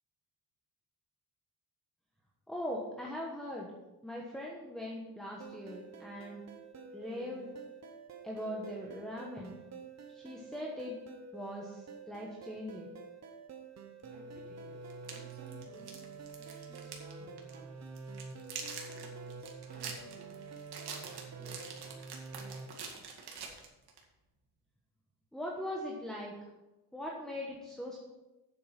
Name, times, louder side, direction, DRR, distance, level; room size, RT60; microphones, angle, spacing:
voice 1, 2.5-3.8 4.0-6.4 6.9-7.5 8.2-9.6 10.1-11.0 11.3-12.9 25.3-26.3 26.9-28.0, left 1 dB, ahead, -3 dB, 1.2 m, -40 dB
sound 1, 5.4-22.7, right 4 dB, 40° right, 1.0 m, -48 dB
sound 2, 14.0-14.1 14.9-17.1 17.4-17.6 18.0-24.0, right 5 dB, 70° right, 2.1 m, -45 dB
voice 2, 14.1-17.9 18.6-20.5 20.9-22.3, right 1 dB, 20° right, -2 dB, 2.8 m, -60 dB
8.9 x 7.7 x 5.9 m, 1.1 s
wide cardioid pair, 170°, 40 cm